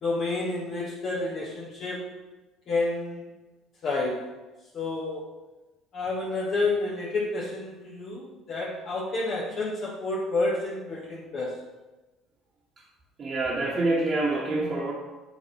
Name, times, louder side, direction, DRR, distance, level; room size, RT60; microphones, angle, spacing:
voice 1, 0.0-2.1 2.7-3.3 3.8-4.3 4.7-5.3 5.9-11.6, left 2 dB, 55° left, -6 dB, 1.6 m, -29 dB
voice 2, 13.2-14.9, right 2 dB, 40° right, -5 dB, 1.2 m, -26 dB
7.0 x 3.6 x 4.2 m, 1.1 s
supercardioid pair, 75°, 0 cm